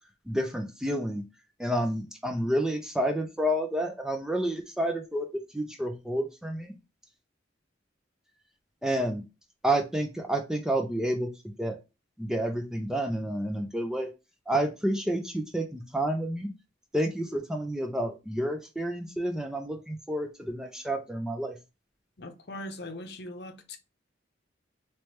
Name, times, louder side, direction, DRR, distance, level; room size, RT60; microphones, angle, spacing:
voice 1, 0.3-1.2 1.6-6.7 8.8-9.2 9.6-11.3 11.6-11.8 12.2-14.1 14.5-16.5 16.9-21.6, right 1 dB, 5° right, 0.4 m, -29 dB
voice 2, 22.2-23.8, left 1 dB, 60° left, 0.7 m, -40 dB
3.2 x 3.1 x 3.1 m
head